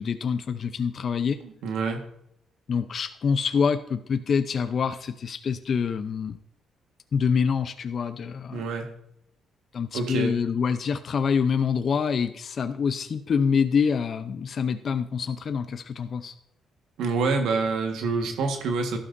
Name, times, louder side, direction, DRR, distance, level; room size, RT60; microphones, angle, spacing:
voice 1, 0.0-1.4 2.7-6.4 7.1-8.6 9.7-16.3, left 6 dB, 50° left, 10 dB, 0.6 m, -26 dB
voice 2, 1.4-2.1 8.5-8.9 9.9-10.4 17.0-19.0, right 4 dB, 85° right, 4 dB, 1.5 m, -27 dB
12.0 x 11.5 x 2.6 m, 0.73 s
cardioid pair, 90°, 0 cm